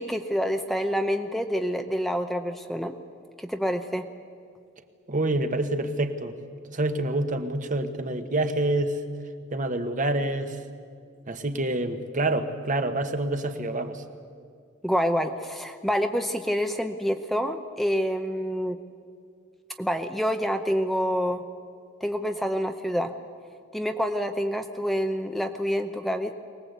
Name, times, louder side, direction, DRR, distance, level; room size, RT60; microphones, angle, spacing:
voice 1, 0.0-2.9 3.4-4.1 14.8-18.8 19.8-21.4 22.0-23.1 23.7-26.3, equal, ahead, 6 dB, 0.7 m, -27 dB
voice 2, 5.1-6.3 6.7-9.0 9.5-10.6 11.3-14.0, right 2 dB, 40° right, 7 dB, 1.3 m, -27 dB
23.5 x 19.0 x 8.1 m, 2.3 s
head